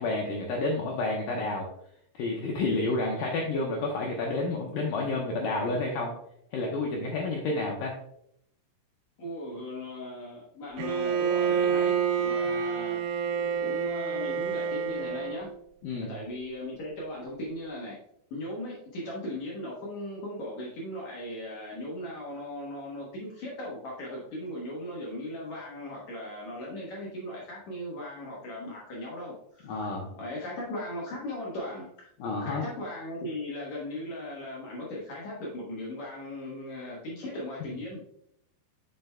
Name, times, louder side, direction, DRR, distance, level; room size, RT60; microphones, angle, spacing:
voice 1, 0.0-1.7 2.2-6.1 6.5-8.0 15.8-16.1 29.6-30.1 32.2-32.6, left 2 dB, 90° left, 0 dB, 1.9 m, -30 dB
voice 2, 9.2-13.0 13.6-15.5 16.0-18.0 18.3-29.9 30.2-32.1 32.4-38.0, left 1 dB, 65° left, -4 dB, 1.8 m, -38 dB
Bowed string instrument, 10.8-15.5, right 7 dB, 80° right, 2.8 m, -28 dB
7.6 x 7.0 x 2.3 m, 0.72 s
omnidirectional pair, 5.0 m